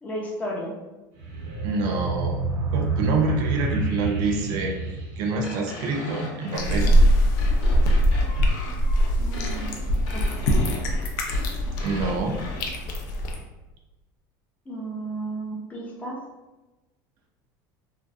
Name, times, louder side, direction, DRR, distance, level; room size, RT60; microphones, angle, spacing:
voice 1, 0.0-0.7 9.2-9.7 10.1-10.7 14.7-16.2, right 1 dB, 15° left, -4 dB, 0.5 m, -33 dB
sound 1, 1.2-6.1, right 3 dB, 80° right, 0.8 m, -29 dB
voice 2, 1.6-2.4 2.7-4.7 5.2-6.9 11.8-12.4, right 3 dB, 50° right, 2 dB, 0.3 m, -26 dB
sound 2, 5.4-12.6, left 2 dB, 55° left, 0.8 m, -39 dB
sound 3, 6.5-13.4, equal, 75° left, 0.4 m, -22 dB
2.5 x 2.3 x 2.3 m, 1.1 s
cardioid pair, 165°, 10 cm